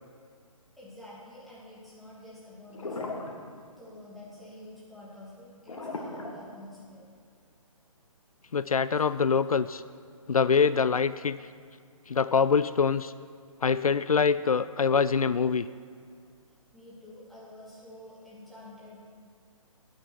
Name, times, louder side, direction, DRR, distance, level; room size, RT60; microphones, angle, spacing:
voice 1, 0.8-3.2 3.8-7.0 8.9-9.0 16.7-19.0, left 1 dB, ahead, -9 dB, 2.7 m, -48 dB
sound 1, 2.7-3.4 3.7-4.0 5.7-7.1, left 2 dB, 60° left, 1.9 m, -37 dB
voice 2, 8.5-9.8 10.3-11.4 12.1-13.1 13.6-15.7, left 6 dB, 75° left, 15 dB, 0.4 m, -24 dB
16.5 x 9.4 x 4.6 m, 2.1 s
figure-of-eight pair, 140°, 18 cm